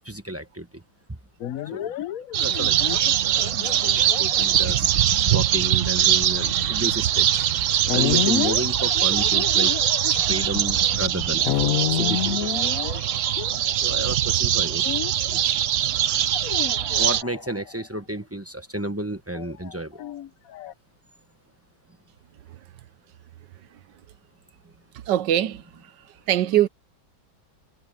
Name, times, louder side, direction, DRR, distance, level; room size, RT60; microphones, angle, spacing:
voice 1, 0.0-0.8 1.1-1.2 1.7-1.9 2.4-4.9 5.3-7.5 7.9-9.7 10.2-12.6 13.7-14.9 15.2-15.6 17.0-20.0, right 1 dB, 10° right, 0.7 m, -32 dB
sound 1, 1.4-14.0 14.8-15.5 16.3-17.8 19.3-20.7, left 11 dB, 65° left, 0.9 m, -30 dB
sound 2, 2.3-17.2, right 11 dB, 90° right, 0.6 m, -22 dB
voice 2, 25.1-25.6 26.3-26.7, right 12 dB, 70° right, 1.3 m, -20 dB
omnidirectional pair, 2.1 m